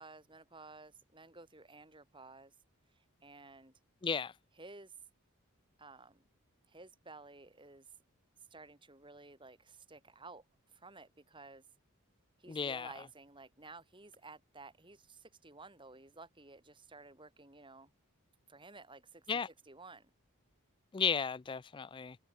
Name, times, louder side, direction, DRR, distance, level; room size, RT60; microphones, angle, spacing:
voice 1, 0.0-2.5 3.2-3.7 4.6-4.9 5.8-6.2 6.7-7.9 8.5-10.5 10.7-11.6 12.4-17.9 18.5-19.4 19.6-20.1, right 3 dB, 20° right, 4.2 m, -54 dB
voice 2, 4.0-4.3 12.5-12.9 19.3-19.5 20.9-22.2, left 6 dB, 20° left, 0.3 m, -34 dB
head